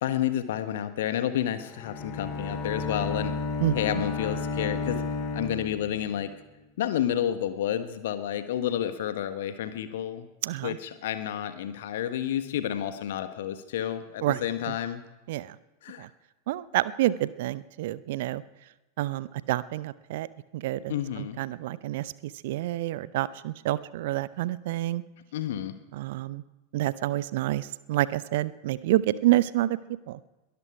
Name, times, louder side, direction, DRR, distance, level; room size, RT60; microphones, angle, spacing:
voice 1, 0.0-3.3 3.7-5.0 5.3-6.3 6.8-10.3 10.6-15.0 15.8-16.1 20.9-21.4 25.3-25.8, left 10 dB, 55° left, 10 dB, 1.4 m, -30 dB
Bowed string instrument, 1.6-6.3, left 3 dB, 35° left, 2.4 m, -32 dB
voice 2, 3.6-4.0 10.4-10.8 14.2-14.4 14.7-14.8 15.3-15.6 16.0-16.1 16.5-18.4 19.0-20.3 20.5-22.1 22.4-25.0 25.9-26.4 26.7-29.8 30.1-30.2, right 15 dB, 55° right, 18 dB, 0.6 m, -28 dB
22.0 x 12.5 x 4.9 m, 1.1 s
figure-of-eight pair, 90°, 0 cm